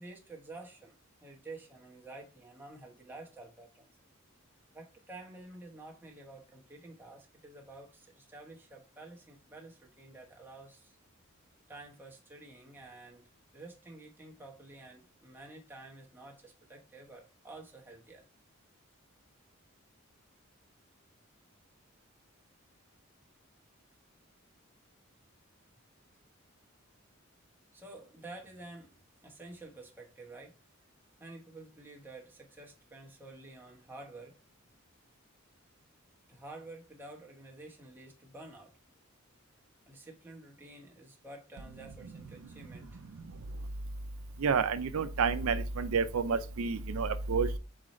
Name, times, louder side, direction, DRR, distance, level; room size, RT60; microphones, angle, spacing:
voice 1, 0.0-3.9 4.7-11.0 11.7-13.3 13.5-18.2 27.7-29.0 29.2-30.6 31.2-34.3 36.3-38.8 39.9-43.2, right 2 dB, 10° right, 1.0 m, -50 dB
voice 2, 44.4-47.6, right 5 dB, 90° right, 0.5 m, -29 dB
4.2 x 3.8 x 3.0 m
head